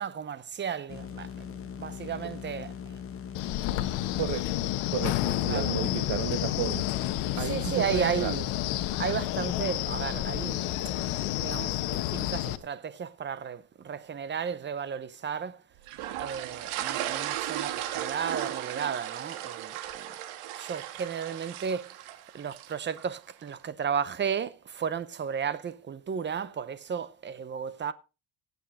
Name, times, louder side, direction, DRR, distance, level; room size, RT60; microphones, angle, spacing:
voice 1, 0.0-3.0 5.2-5.7 7.4-8.5 9.0-10.6 11.3-15.6 16.2-20.1 20.6-22.1 22.3-27.9, right 7 dB, 25° right, 0.7 m, -34 dB
sound 1, 0.9-11.3, left 7 dB, 25° left, 1.1 m, -40 dB
Wind, 3.3-12.6, left 15 dB, 85° left, 1.3 m, -30 dB
voice 2, 4.9-6.9 7.3-8.3 10.8-10.9, right 12 dB, 60° right, 1.3 m, -33 dB
sound 2, 15.9-23.2, right 12 dB, 80° right, 1.8 m, -36 dB
15.5 x 8.2 x 4.1 m
cardioid pair, 155°, 49 cm